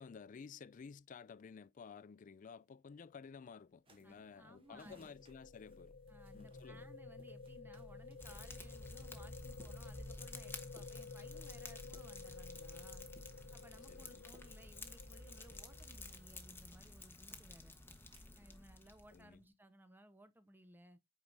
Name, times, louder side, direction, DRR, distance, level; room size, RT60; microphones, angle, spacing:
voice 1, 0.0-6.0 6.3-6.8 13.9-14.3 19.1-19.4, left 6 dB, 45° left, 0.3 m, -54 dB
sound 1, 3.9-18.6, right 1 dB, 30° right, 1.3 m, -68 dB
voice 2, 4.0-5.1 6.1-13.1 13.5-17.8 18.3-21.0, equal, 10° right, 0.9 m, -61 dB
sound 2, 4.4-16.6, left 3 dB, 80° left, 1.0 m, -52 dB
Fire, 8.2-19.3, left 2 dB, 10° left, 1.0 m, -53 dB
8.5 x 4.7 x 2.5 m
head